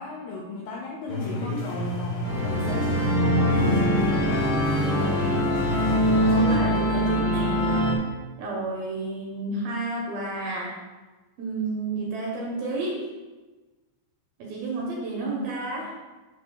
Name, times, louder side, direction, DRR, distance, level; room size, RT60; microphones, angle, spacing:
voice 1, 0.0-4.4 15.2-15.6, left 2 dB, 85° left, 0 dB, 2.3 m, -35 dB
sound 1, 1.1-6.6, left 1 dB, 65° left, 1.1 m, -32 dB
sound 2, 2.2-8.0, equal, 35° left, 1.4 m, -23 dB
voice 2, 6.3-7.7 8.4-10.7 11.4-13.1 14.4-15.9, right 2 dB, 70° right, -3 dB, 2.4 m, -31 dB
11.0 x 6.3 x 2.3 m, 1.2 s
omnidirectional pair, 5.4 m